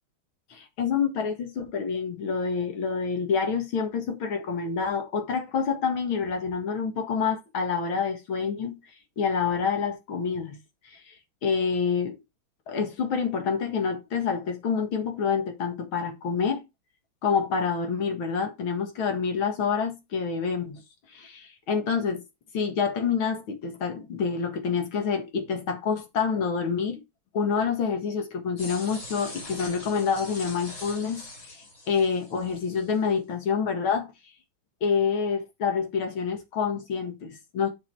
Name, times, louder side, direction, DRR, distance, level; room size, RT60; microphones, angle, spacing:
voice 1, 0.5-8.8 9.2-10.6 10.8-11.1 11.4-12.2 12.7-16.6 17.2-20.8 21.1-22.2 22.5-27.0 27.3-34.1 34.8-37.7, left 6 dB, 90° left, 2.4 m, -27 dB
sound 1, 28.6-33.0, left 2 dB, 45° left, 3.1 m, -42 dB
7.0 x 4.9 x 4.6 m
omnidirectional pair, 2.2 m